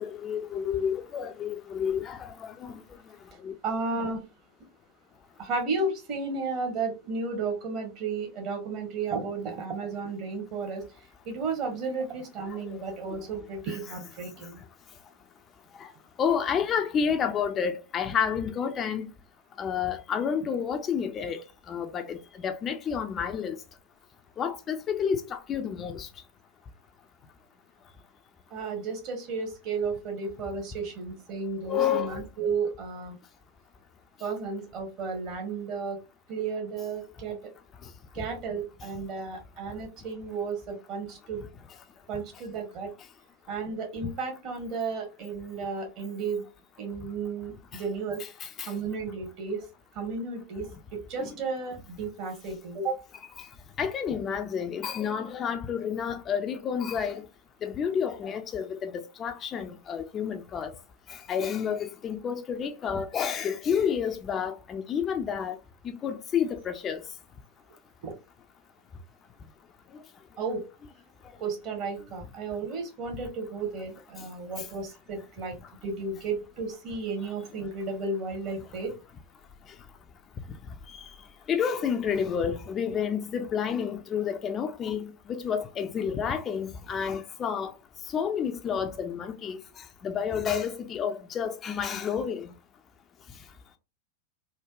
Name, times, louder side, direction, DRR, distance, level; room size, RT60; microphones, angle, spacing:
voice 1, 0.0-2.8 3.4-3.5 12.5-13.2 13.7-14.0 15.8-15.9 16.2-19.1 19.6-21.4 21.7-23.6 24.4-26.1 31.6-32.2 47.7-47.8 48.2-48.7 51.2-51.3 53.4-53.5 53.8-57.2 57.6-60.7 61.1-65.6 65.8-67.0 80.9-81.0 81.5-87.7 88.1-92.5, left 7 dB, 25° left, 0.4 m, -30 dB
voice 2, 3.6-4.2 5.4-10.8 11.2-14.6 28.5-33.2 34.2-36.0 36.3-37.4 38.1-41.4 42.1-42.9 43.5-46.4 46.8-48.2 48.7-49.6 49.9-53.0 66.0-66.1 68.0-68.1 70.4-70.6 71.4-75.6 75.8-78.9, right 4 dB, 40° right, 1.1 m, -33 dB
3.3 x 2.1 x 2.3 m
figure-of-eight pair, 90°, 0 cm